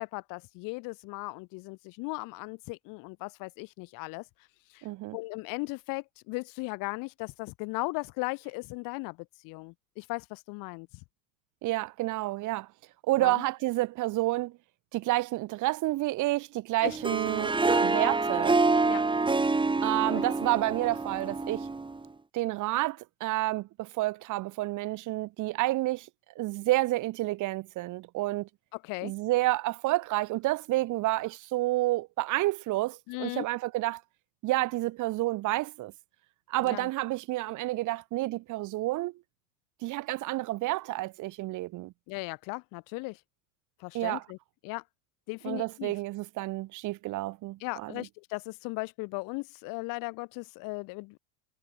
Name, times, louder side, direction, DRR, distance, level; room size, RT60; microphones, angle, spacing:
voice 1, 0.0-4.2 4.7-4.9 5.1-9.2 9.4-10.9 13.2-13.4 16.8-17.2 18.9-19.0 20.1-20.2 28.7-29.1 33.1-33.5 36.6-36.9 42.1-43.2 43.8-44.4 44.6-44.8 45.3-45.9 47.6-51.2, left 27 dB, 65° left, 2.4 m, -37 dB
voice 2, 4.8-5.2 11.6-12.7 13.0-14.6 14.9-18.6 19.8-21.7 22.3-26.1 26.4-28.5 29.0-34.0 34.4-35.9 36.5-39.1 39.8-41.9 43.9-44.2 45.4-48.0, right 18 dB, 55° right, 2.6 m, -29 dB
Harp, 16.8-22.1, right 3 dB, 15° right, 3.6 m, -27 dB
supercardioid pair, 100°, 36 cm